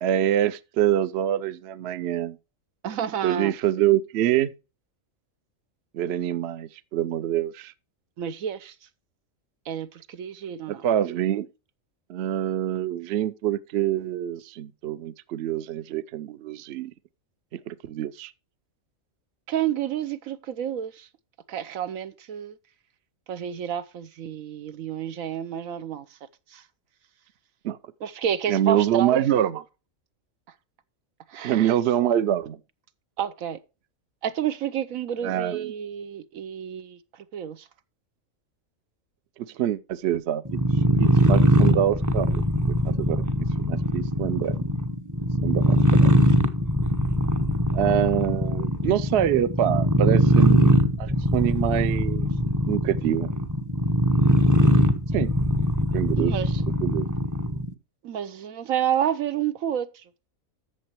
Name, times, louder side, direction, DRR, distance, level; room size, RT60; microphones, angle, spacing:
voice 1, 0.0-2.4 3.2-4.5 5.9-7.7 10.7-11.5 12.1-16.9 17.7-18.3 27.6-27.8 28.5-29.6 31.4-32.6 35.2-35.7 39.6-40.4 41.0-42.4 42.8-44.6 45.4-46.1 47.7-52.3 52.7-53.3 55.1-55.3 55.9-56.3 56.8-57.1, right 11 dB, 60° right, 0.8 m, -25 dB
voice 2, 2.8-3.5 8.2-8.7 9.7-10.8 19.5-21.1 21.5-22.6 23.3-26.0 26.5-26.6 28.0-29.2 31.3-31.7 32.0-32.1 33.2-33.6 34.2-37.0 37.3-37.6 56.2-56.5 58.0-59.9, right 9 dB, 85° right, 1.2 m, -29 dB
sound 1, 40.5-57.7, equal, 20° right, 0.7 m, -21 dB
14.0 x 6.6 x 3.0 m
omnidirectional pair, 1.4 m